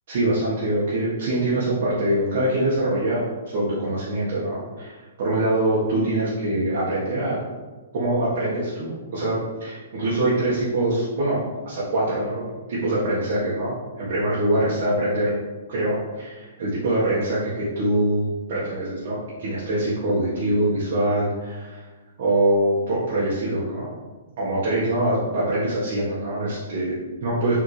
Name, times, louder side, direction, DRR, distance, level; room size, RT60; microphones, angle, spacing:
voice 1, 0.1-7.4 7.9-12.4 12.7-15.3 15.7-21.8 22.2-23.9 24.4-27.6, right 1 dB, 50° right, -8 dB, 1.4 m, -24 dB
4.5 x 3.6 x 3.2 m, 1.3 s
hypercardioid pair, 150°, 0 cm